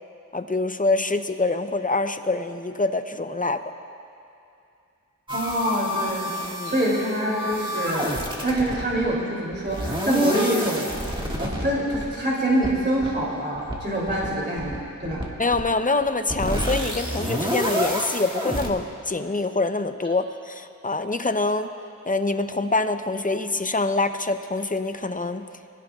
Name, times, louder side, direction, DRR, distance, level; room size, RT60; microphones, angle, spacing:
voice 1, 0.3-3.6 6.4-6.7 15.4-21.7 22.1-25.5, left 3 dB, 25° left, 9 dB, 0.6 m, -25 dB
sound 1, 5.3-9.1 9.5-11.7 11.9-12.1 12.5-12.7 13.0-13.2 13.6-13.7 14.1-14.3 14.6-14.8 15.0-15.3 15.5-15.7 16.0-18.7, equal, 15° right, 1.9 m, -28 dB
voice 2, 5.3-6.3 6.6-8.2 8.4-10.9 11.4-15.2, right 1 dB, 35° right, -5 dB, 2.9 m, -25 dB
23.5 x 16.5 x 2.4 m, 2.6 s
wide cardioid pair, 70°, 32 cm